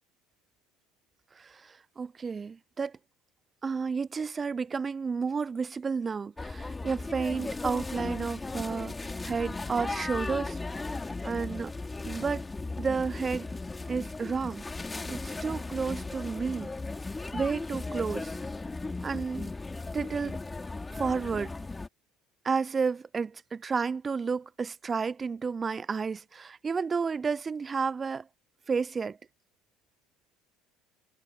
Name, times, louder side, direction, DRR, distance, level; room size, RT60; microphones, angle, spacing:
voice 1, 1.4-2.9 3.6-10.6 11.2-11.7 12.0-12.4 12.8-13.5 13.9-14.6 15.1-16.7 17.3-18.4 19.0-19.5 19.9-20.4 20.9-21.5 22.4-28.3 28.7-29.2, right 5 dB, 25° right, 0.7 m, -31 dB
sound 1, 6.4-21.9, left 3 dB, 15° left, 3.9 m, -36 dB
hypercardioid pair, 65°, 0 cm